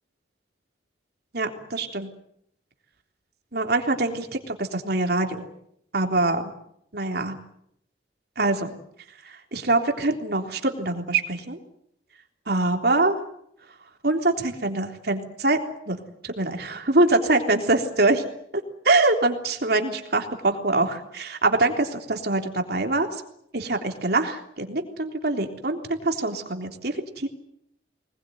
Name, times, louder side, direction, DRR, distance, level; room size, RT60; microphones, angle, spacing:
voice 1, 1.3-2.1 3.5-5.5 5.9-6.5 6.9-7.4 8.4-8.8 9.2-11.6 12.5-13.2 14.0-15.6 15.9-16.0 16.2-18.2 18.9-23.1 23.5-27.3, right 2 dB, 55° right, 4 dB, 3.5 m, -24 dB
24.5 x 20.5 x 9.4 m, 0.73 s
head